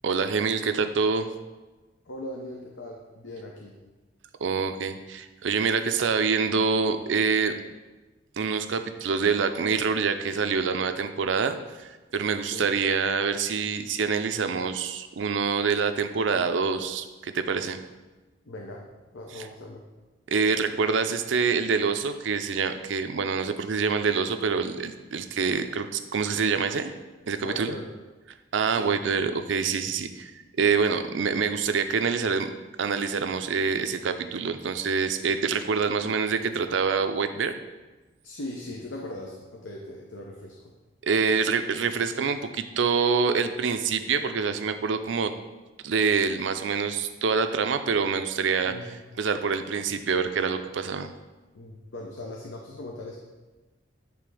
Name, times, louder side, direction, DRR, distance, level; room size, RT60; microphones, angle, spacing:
voice 1, 0.0-1.3 4.4-7.5 8.4-17.8 19.4-19.5 20.3-26.9 27.3-27.7 28.5-30.3 30.6-32.5 32.8-37.5 41.0-45.3 45.8-48.7 49.2-51.1, right 5 dB, 70° right, 9 dB, 0.5 m, -26 dB
voice 2, 2.0-3.8 12.4-12.7 18.5-18.9 19.1-19.9 27.4-27.9 28.6-28.9 38.2-40.7 48.6-48.8 51.5-53.2, left 1 dB, 70° left, 0 dB, 0.7 m, -39 dB
8.6 x 3.4 x 4.8 m, 1.2 s
head